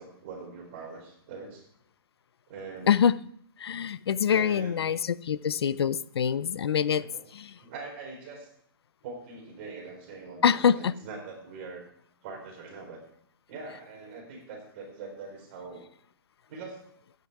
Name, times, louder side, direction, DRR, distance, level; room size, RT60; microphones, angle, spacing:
voice 1, 0.0-1.6 2.5-3.0 4.3-4.8 7.0-7.2 7.6-8.5 9.0-11.8 12.2-13.0 13.5-15.9 16.5-16.8, right 4 dB, 30° right, 0 dB, 4.0 m, -42 dB
voice 2, 3.6-7.0 7.3-7.5 10.4-10.9, left 8 dB, 85° left, 17 dB, 0.6 m, -25 dB
13.0 x 9.6 x 4.8 m, 0.64 s
hypercardioid pair, 175°, 13 cm